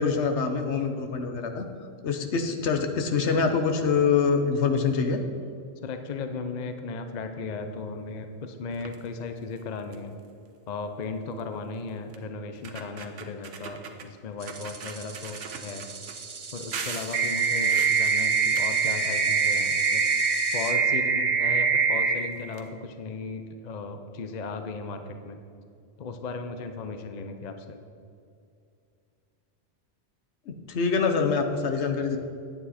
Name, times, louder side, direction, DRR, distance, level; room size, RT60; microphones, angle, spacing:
voice 1, 0.0-1.7 2.0-5.2 30.5-32.2, left 5 dB, 70° left, 6 dB, 1.1 m, -25 dB
voice 2, 5.8-10.2 10.7-15.9 16.5-20.0 20.5-25.4 26.0-27.8, left 4 dB, 45° left, 7 dB, 0.6 m, -36 dB
sound 1, 8.7-9.1 9.6-9.7 9.9-10.2 11.4-11.5 12.1-12.2 12.5-14.1 14.5-16.2 16.7-19.5 19.8-20.9 21.8-21.9 22.2-22.3 22.5-22.6, right 6 dB, 80° right, 1.2 m, -41 dB
sound 2, 14.4-20.7, right 4 dB, 35° right, 0.5 m, -39 dB
sound 3, 17.1-22.1, right 5 dB, 60° right, 1.7 m, -23 dB
9.7 x 8.7 x 4.2 m, 2.4 s
omnidirectional pair, 1.2 m